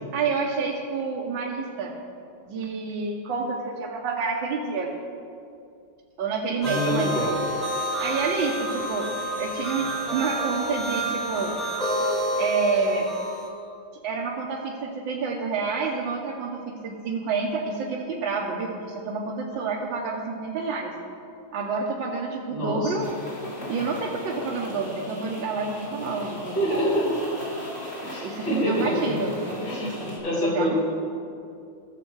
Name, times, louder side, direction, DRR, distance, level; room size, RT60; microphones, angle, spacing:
voice 1, 0.1-1.9 2.4-4.9 6.2-7.3 8.0-9.1 9.4-11.5 12.4-13.1 14.0-20.9 21.5-23.1 23.7-26.6 28.2-29.3 30.5-30.7, right 4 dB, 75° right, -1 dB, 1.6 m, -28 dB
voice 2, 6.6-7.3 22.5-23.1 26.6-27.1 28.0-29.2 29.6-30.8, equal, 75° left, -7 dB, 3.9 m, -26 dB
sound 1, 6.6-13.5, equal, ahead, 2.2 m, -29 dB
sound 2, 23.0-30.2, left 1 dB, 35° left, 2.3 m, -38 dB
15.5 x 6.5 x 4.6 m, 2.5 s
omnidirectional pair, 2.1 m